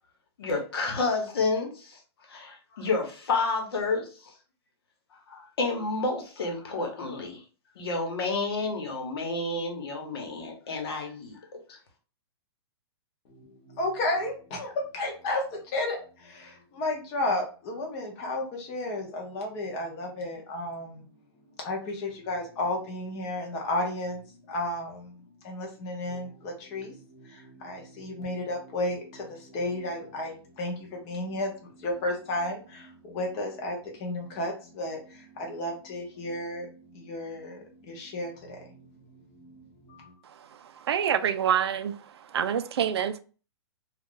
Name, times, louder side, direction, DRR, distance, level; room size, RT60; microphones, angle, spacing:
voice 1, 0.4-2.0 2.3-4.3 5.3-7.4 7.8-11.8, left 3 dB, 65° left, 1.0 m, -30 dB
voice 2, 13.3-21.2 21.5-38.8 39.1-40.2, left 1 dB, 20° left, 0.7 m, -33 dB
voice 3, 40.2-43.2, right 9 dB, 70° right, 0.4 m, -27 dB
2.5 x 2.3 x 3.6 m
hypercardioid pair, 170°, 14 cm